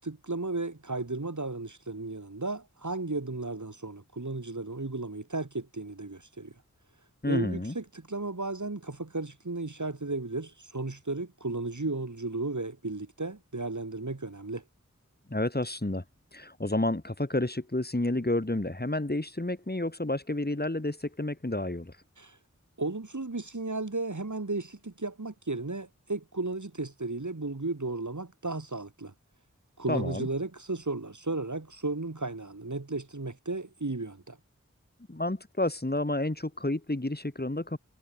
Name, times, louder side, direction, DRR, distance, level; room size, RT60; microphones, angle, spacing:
voice 1, 0.0-6.5 7.3-14.6 22.2-22.4 22.8-29.1 29.8-34.4, right 3 dB, 75° right, 7.8 m, -34 dB
voice 2, 7.2-7.7 15.3-16.0 16.3-22.0 29.9-30.3 35.1-37.8, left 1 dB, 30° left, 4.8 m, -30 dB
wide cardioid pair, 50°, 30 cm